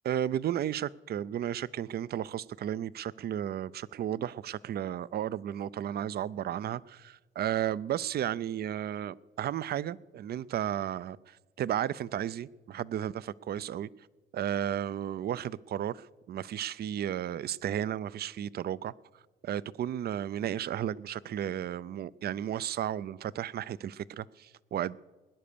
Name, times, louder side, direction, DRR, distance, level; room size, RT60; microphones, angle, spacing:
voice 1, 0.1-13.9 14.3-18.9 19.4-25.0, right 10 dB, 55° right, 0.4 m, -33 dB
20.0 x 9.9 x 6.8 m
cardioid pair, 90°, 20 cm